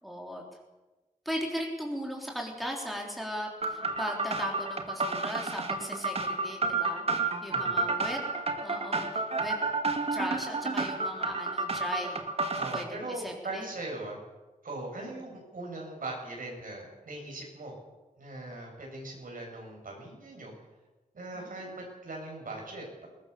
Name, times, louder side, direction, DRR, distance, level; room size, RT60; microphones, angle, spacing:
voice 1, 0.0-0.4 1.3-8.2 8.5-9.6 10.1-12.2 12.7-12.9 13.2-13.7 15.0-15.1 21.4-21.8, equal, ahead, 0 dB, 3.8 m, -37 dB
sound 1, 3.6-12.8, right 3 dB, 45° right, 2.0 m, -31 dB
voice 2, 7.5-7.9 12.5-14.2 14.6-17.7 18.2-20.5 21.1-23.1, right 2 dB, 70° right, -1 dB, 7.8 m, -40 dB
21.5 x 19.0 x 7.0 m, 1.1 s
wide cardioid pair, 130°, 15 cm